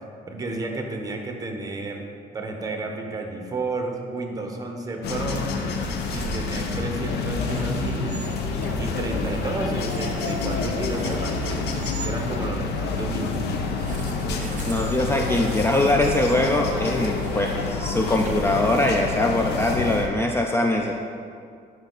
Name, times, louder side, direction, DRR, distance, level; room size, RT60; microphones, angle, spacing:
voice 1, 0.2-2.0 2.3-5.5 6.1-8.2 8.8-11.4 12.0-13.5, right 2 dB, 20° right, 2 dB, 1.1 m, -31 dB
sound 1, 5.0-20.1, left 4 dB, 75° left, 0.9 m, -28 dB
sound 2, 5.8-12.2 13.7-19.0, right 5 dB, 45° right, 0.6 m, -39 dB
voice 2, 14.7-20.9, left 1 dB, 15° left, 2 dB, 0.4 m, -22 dB
9.9 x 5.4 x 4.0 m, 2.4 s
cardioid pair, 110°, 17 cm